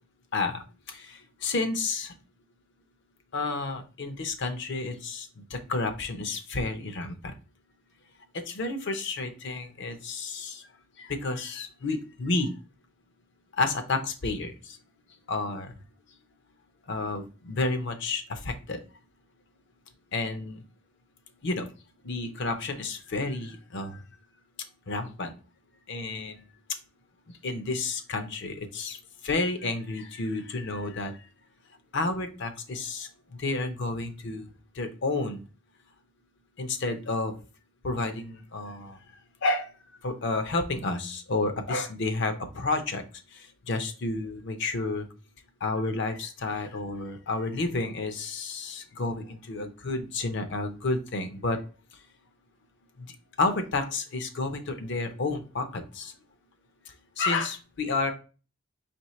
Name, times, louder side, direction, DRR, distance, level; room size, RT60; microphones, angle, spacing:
voice 1, 0.3-0.6 0.9-2.1 3.3-7.3 8.5-10.6 11.0-12.5 13.6-14.8 15.3-15.7 16.9-18.8 20.1-20.6 21.4-21.7 22.0-24.0 24.9-25.3 25.9-26.4 27.4-29.0 29.2-31.2 31.9-33.1 33.4-34.5 34.8-35.4 36.6-37.4 37.8-39.0 39.4-39.7 40.0-43.0 43.3-45.1 45.6-51.6 53.0-53.1 53.4-56.1 57.2-58.1, left 3 dB, 65° left, 8 dB, 0.7 m, -30 dB
4.3 x 3.1 x 3.0 m, 0.34 s
head